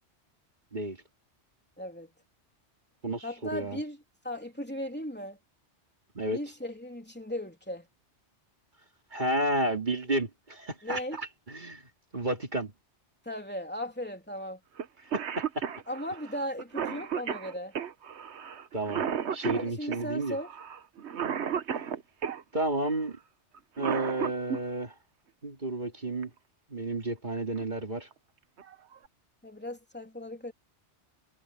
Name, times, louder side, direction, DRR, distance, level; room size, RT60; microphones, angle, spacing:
voice 1, 1.8-2.1 3.2-5.4 6.3-7.9 10.8-11.2 13.2-14.6 15.9-17.7 19.5-20.5 29.4-30.5, equal, 10° left, 3.3 m, -37 dB
voice 2, 3.0-3.8 6.1-6.4 9.1-11.8 12.1-12.7 15.1-15.6 18.7-19.0 19.3-20.4 22.5-23.2 23.8-24.9 25.4-26.3 26.7-28.1, right 1 dB, 40° right, 2.7 m, -31 dB
Cough, 14.8-14.9 15.1-22.4 23.5-24.6 26.2-26.3 27.4-27.6 28.1-28.2 28.6-29.1, right 8 dB, 70° right, 1.3 m, -34 dB
omnidirectional pair, 1.2 m